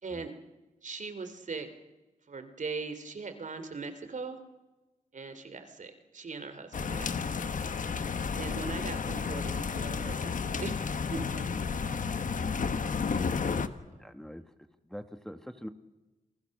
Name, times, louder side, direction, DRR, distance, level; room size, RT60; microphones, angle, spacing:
voice 1, 0.8-1.7 2.3-4.4 5.1-7.7 8.3-11.7 13.8-14.1, right 4 dB, 60° right, 9 dB, 2.9 m, -40 dB
sound 1, 6.7-13.7, left 5 dB, 65° left, 1.2 m, -32 dB
voice 2, 14.0-14.5 14.8-15.7, equal, 5° left, 8 dB, 1.2 m, -44 dB
28.0 x 20.0 x 6.5 m, 1.1 s
wide cardioid pair, 100°, 15 cm